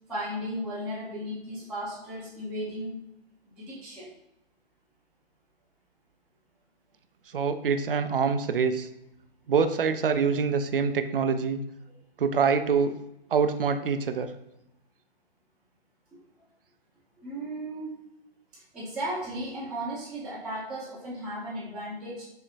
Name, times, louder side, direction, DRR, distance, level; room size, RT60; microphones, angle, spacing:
voice 1, 0.1-2.9 3.4-4.1 16.1-16.2 17.2-17.9 18.5-22.2, right 1 dB, 5° right, -12 dB, 0.9 m, -35 dB
voice 2, 7.3-8.9 9.5-11.6 12.2-12.9 13.3-14.3, right 5 dB, 65° right, 9 dB, 0.5 m, -25 dB
6.4 x 2.8 x 2.5 m, 0.88 s
figure-of-eight pair, 120°, 30 cm